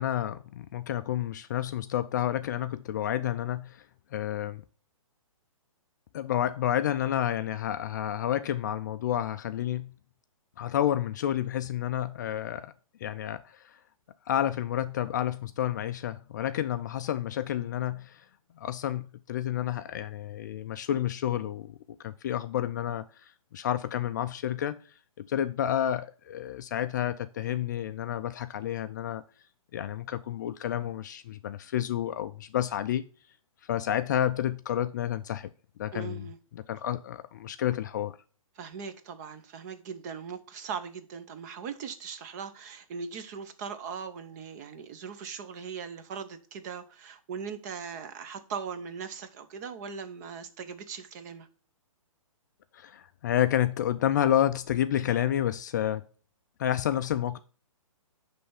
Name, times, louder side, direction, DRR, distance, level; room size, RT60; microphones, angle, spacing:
voice 1, 0.0-3.9 4.1-4.6 6.1-9.9 10.6-12.7 13.0-13.8 14.3-18.2 18.6-21.8 22.0-24.8 25.2-29.2 29.7-33.0 33.6-35.5 35.8-36.3 36.5-38.2 52.7-56.0 56.6-57.4, left 11 dB, 35° left, 0.3 m, -30 dB
voice 2, 35.9-36.4 38.6-51.5, right 6 dB, 30° right, 0.8 m, -39 dB
9.9 x 3.4 x 5.5 m
hypercardioid pair, 150°, 18 cm